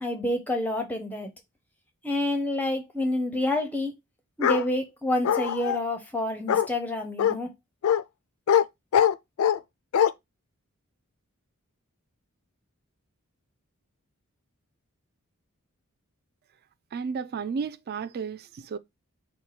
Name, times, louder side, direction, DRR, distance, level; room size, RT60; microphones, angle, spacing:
voice 1, 0.0-1.3 2.0-3.9 4.4-7.5, left 1 dB, 10° left, 0.5 m, -28 dB
Bark, 4.4-4.6 5.2-5.8 6.5-6.7 7.2-7.4 7.8-8.0 8.5-8.6 8.9-9.6 9.9-10.1, left 9 dB, 70° left, 0.3 m, -22 dB
voice 2, 16.9-18.8, right 5 dB, 45° right, 0.3 m, -33 dB
4.3 x 2.2 x 4.7 m
head